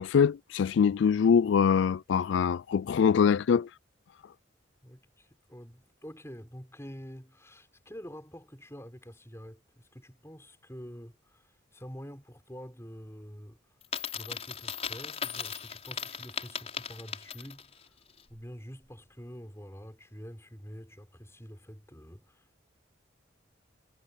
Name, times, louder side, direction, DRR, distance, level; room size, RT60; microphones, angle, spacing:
voice 1, 0.0-3.7, left 6 dB, 65° left, 0.3 m, -24 dB
voice 2, 4.8-13.6 14.1-18.0 18.3-22.5, equal, 15° left, 5.8 m, -47 dB
Coin (dropping), 13.8-17.7, left 7 dB, 30° left, 6.4 m, -37 dB
head